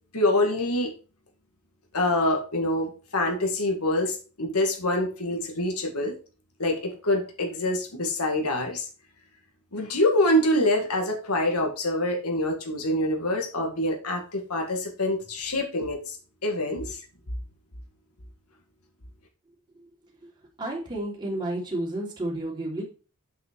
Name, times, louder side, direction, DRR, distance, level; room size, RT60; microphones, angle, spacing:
voice 1, 0.1-0.9 1.9-6.1 6.6-8.9 9.7-16.2 16.4-17.0, left 1 dB, 85° left, 2 dB, 2.1 m, -25 dB
voice 2, 20.6-22.8, right 1 dB, 20° right, -4 dB, 3.4 m, -31 dB
7.5 x 6.1 x 4.6 m, 0.36 s
head